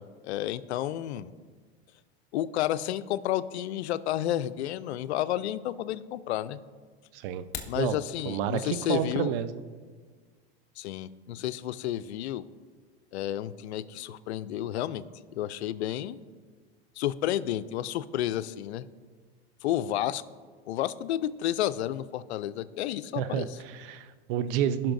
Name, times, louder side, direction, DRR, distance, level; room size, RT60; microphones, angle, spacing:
voice 1, 0.0-1.3 2.3-6.6 7.7-9.3 10.8-12.4 13.1-15.0 15.3-16.2 17.0-18.8 19.6-20.2 20.7-23.5, left 12 dB, 90° left, 15 dB, 0.5 m, -31 dB
voice 2, 7.1-7.4 7.7-8.0 8.2-9.6 23.2-24.9, right 9 dB, 60° right, 13 dB, 0.6 m, -30 dB
sound 1, 7.3-7.8, left 8 dB, 30° left, 1.0 m, -39 dB
16.5 x 5.9 x 2.6 m, 1.5 s
supercardioid pair, 120°, 32 cm